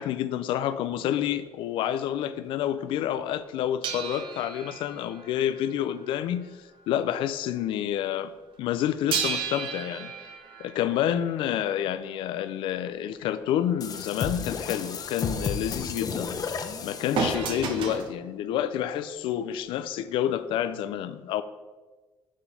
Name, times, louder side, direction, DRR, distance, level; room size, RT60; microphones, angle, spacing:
voice 1, 0.0-8.3 8.6-10.1 10.6-16.4 16.8-21.4, left 10 dB, 85° left, 13 dB, 0.5 m, -29 dB
sound 1, 3.8-7.0 7.2-7.5 9.1-11.8 17.1-18.2 19.1-19.2, right 6 dB, 80° right, 1.0 m, -33 dB
sound 2, 13.8-18.0, left 5 dB, 50° left, 0.8 m, -33 dB
6.9 x 6.2 x 5.5 m, 1.3 s
cardioid pair, 95°, 8 cm